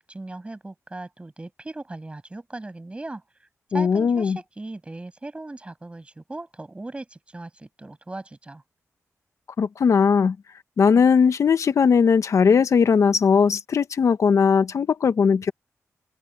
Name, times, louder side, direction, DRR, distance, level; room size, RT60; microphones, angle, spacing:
voice 1, 0.1-3.2 3.7-8.6, right 2 dB, 20° right, 7.8 m, -38 dB
voice 2, 3.7-4.4 9.6-10.4 10.8-15.5, left 6 dB, 70° left, 1.1 m, -19 dB
open air
wide cardioid pair, 125°, 6 cm